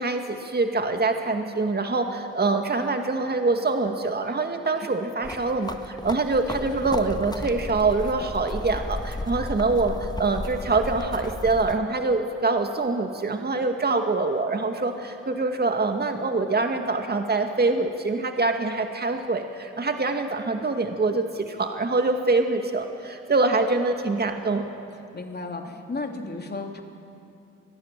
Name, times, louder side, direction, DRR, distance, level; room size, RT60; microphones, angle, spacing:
voice 1, 0.0-24.6, right 3 dB, 30° right, 5 dB, 2.1 m, -25 dB
sound 1, 5.2-11.8, left 2 dB, 10° left, 1.3 m, -34 dB
voice 2, 25.1-26.8, left 3 dB, 30° left, 3 dB, 3.4 m, -33 dB
24.5 x 20.5 x 7.6 m, 2.6 s
hypercardioid pair, 45°, 33 cm